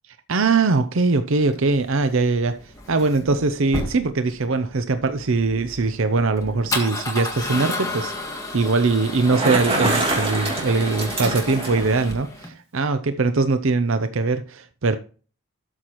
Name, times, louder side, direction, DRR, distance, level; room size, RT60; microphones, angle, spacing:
voice 1, 0.3-2.6 2.9-15.0, right 3 dB, 60° right, 0.6 m, -21 dB
Male speech man speaking / Car / Engine starting, 1.4-12.5, left 2 dB, 15° left, 1.7 m, -32 dB
Bicycle, 9.1-11.9, right 2 dB, 25° right, 3.0 m, -25 dB
12.5 x 6.5 x 3.0 m
head